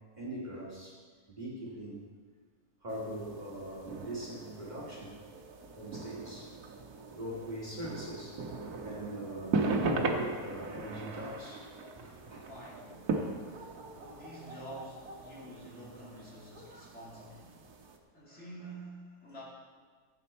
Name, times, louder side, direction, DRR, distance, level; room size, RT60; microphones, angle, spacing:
voice 1, 0.2-0.9 1.3-2.0 2.8-5.1 5.8-6.5 7.1-8.4 8.8-11.6 12.0-12.5, right 1 dB, 30° right, -4 dB, 2.3 m, -40 dB
sound 1, 2.9-18.0, right 3 dB, 80° right, 1.6 m, -39 dB
voice 2, 5.5-6.1 12.5-17.5 18.1-19.4, right 1 dB, 50° left, -6 dB, 3.0 m, -49 dB
15.5 x 8.2 x 4.3 m, 1.6 s
omnidirectional pair, 1.6 m